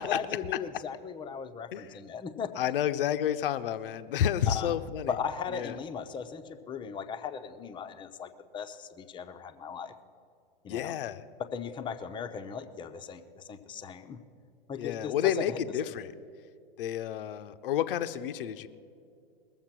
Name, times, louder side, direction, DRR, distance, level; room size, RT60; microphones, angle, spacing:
voice 1, 0.0-2.5 4.5-4.7 5.1-9.9 10.6-11.0 11.4-14.2 14.7-15.6, left 6 dB, 15° left, 7 dB, 0.7 m, -37 dB
voice 2, 2.6-5.1 5.5-5.7 10.7-11.2 14.8-16.1 16.8-18.7, left 10 dB, 65° left, 11 dB, 0.7 m, -30 dB
20.0 x 7.3 x 5.9 m, 2.4 s
hypercardioid pair, 115°, 30 cm